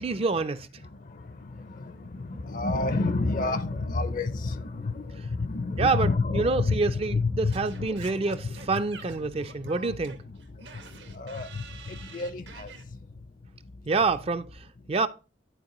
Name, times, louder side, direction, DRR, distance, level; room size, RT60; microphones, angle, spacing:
voice 1, 0.0-0.7 5.8-10.2 13.9-15.1, right 3 dB, 35° right, 0.4 m, -27 dB
voice 2, 0.8-8.8 9.9-14.0, left 3 dB, 50° left, 0.5 m, -31 dB
Singing / Scratching (performance technique), 7.5-12.8, right 5 dB, 75° right, 1.2 m, -47 dB
11.0 x 4.3 x 3.0 m
head